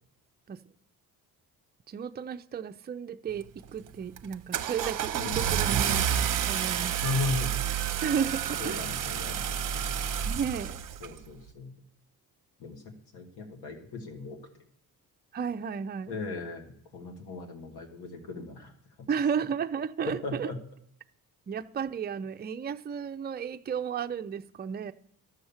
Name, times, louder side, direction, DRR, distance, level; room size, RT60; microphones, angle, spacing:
voice 1, 1.9-7.0 8.0-8.8 10.3-10.8 15.3-16.1 19.1-20.5 21.5-24.9, right 7 dB, 25° right, 7 dB, 0.5 m, -33 dB
Car / Engine starting, 3.4-3.7 4.2-11.1, right 9 dB, 55° right, 0.8 m, -29 dB
voice 2, 5.2-5.5 7.0-7.5 8.6-9.9 11.0-11.7 12.6-14.4 16.1-18.7 19.0-19.1 20.1-20.6, left 4 dB, 80° left, 3 dB, 2.3 m, -37 dB
12.0 x 6.3 x 7.2 m, 0.70 s
cardioid pair, 80°, 39 cm